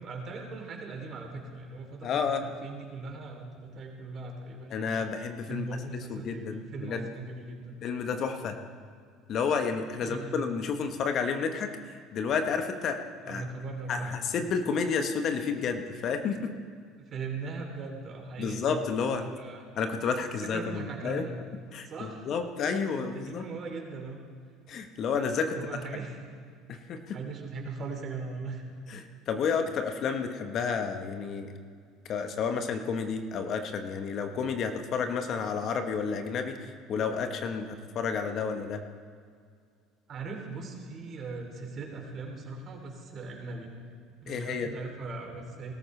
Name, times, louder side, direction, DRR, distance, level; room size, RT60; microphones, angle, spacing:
voice 1, 0.0-4.8 5.5-7.7 10.0-10.4 13.2-14.1 17.0-18.8 19.1-19.6 20.4-21.3 21.8-22.3 22.8-24.2 25.4-26.2 27.1-28.6 29.4-29.6 40.1-43.7 44.2-45.7, right 3 dB, 45° right, 2 dB, 3.0 m, -39 dB
voice 2, 2.0-2.4 4.7-5.7 6.1-7.1 7.8-8.6 9.3-13.0 13.3-13.4 13.9-16.5 18.4-19.2 19.8-21.2 21.7-23.5 24.7-25.6 26.7-27.2 28.9-31.5 32.1-38.8 44.3-44.7, left 5 dB, 50° left, 6 dB, 1.1 m, -31 dB
20.0 x 13.5 x 3.3 m, 2.1 s
hypercardioid pair, 75°, 0 cm